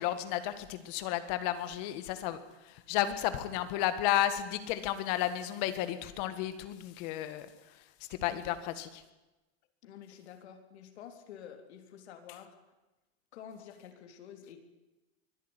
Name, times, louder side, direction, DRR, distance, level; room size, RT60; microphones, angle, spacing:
voice 1, 0.0-2.4 2.9-7.5 8.2-9.0, left 12 dB, 40° left, 11 dB, 1.7 m, -32 dB
voice 2, 9.8-12.6 13.3-14.6, left 8 dB, 80° left, 6 dB, 3.8 m, -49 dB
24.0 x 14.5 x 9.9 m, 1.1 s
supercardioid pair, 180°, 33 cm